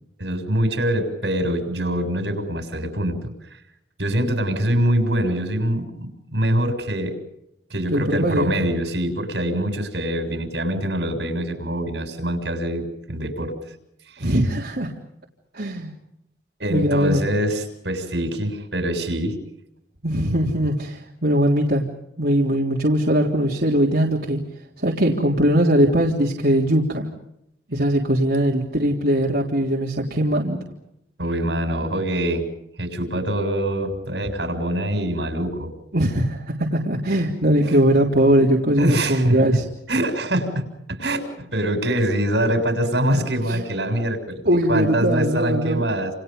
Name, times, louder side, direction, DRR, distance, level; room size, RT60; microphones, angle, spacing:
voice 1, 0.2-3.3 4.0-7.2 7.7-13.6 14.1-14.3 16.6-19.4 31.2-32.4 32.8-35.7 37.7-37.8 38.8-39.4 39.9-46.1, right 1 dB, 80° right, 6 dB, 7.1 m, -24 dB
voice 2, 7.9-8.5 14.2-14.9 15.5-15.9 16.7-17.2 20.0-21.9 22.2-24.4 24.8-27.1 27.7-30.6 35.9-39.6 43.5-43.6 44.4-45.8, equal, 60° right, -2 dB, 3.5 m, -20 dB
29.5 x 29.0 x 5.4 m, 0.80 s
head